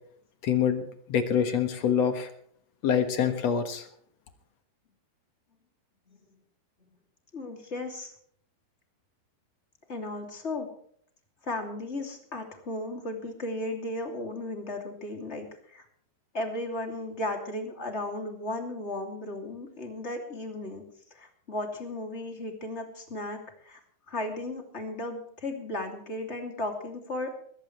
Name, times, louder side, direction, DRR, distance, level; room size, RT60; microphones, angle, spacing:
voice 1, 0.4-0.8 1.1-2.3 2.8-3.9, left 8 dB, 60° left, 8 dB, 1.7 m, -25 dB
voice 2, 7.3-8.1 9.9-10.7 11.4-15.8 16.3-20.8 21.1-23.8 24.1-27.3, left 2 dB, 20° left, 3 dB, 2.4 m, -35 dB
21.0 x 17.0 x 3.3 m, 0.63 s
omnidirectional pair, 4.9 m